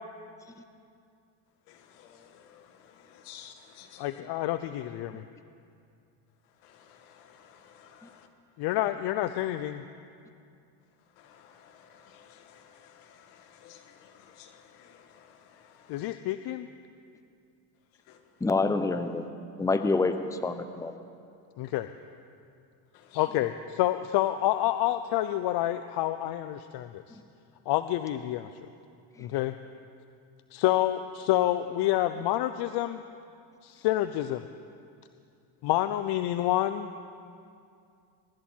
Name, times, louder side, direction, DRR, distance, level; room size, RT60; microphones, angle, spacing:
voice 1, 1.7-4.2 6.6-8.3 11.2-16.1 18.1-18.2 22.9-23.3, left 8 dB, 80° left, 6 dB, 1.9 m, -54 dB
voice 2, 4.0-5.2 8.6-9.8 15.9-16.7 21.6-21.9 23.1-27.2 27.7-28.5 29.2-29.5 30.5-33.0 33.6-34.4 35.6-36.9, left 14 dB, 55° left, 11 dB, 0.7 m, -28 dB
voice 3, 18.4-19.2 19.6-20.1 20.4-20.9, left 3 dB, 5° left, 9 dB, 0.7 m, -26 dB
23.5 x 13.0 x 4.5 m, 2.5 s
supercardioid pair, 105°, 47 cm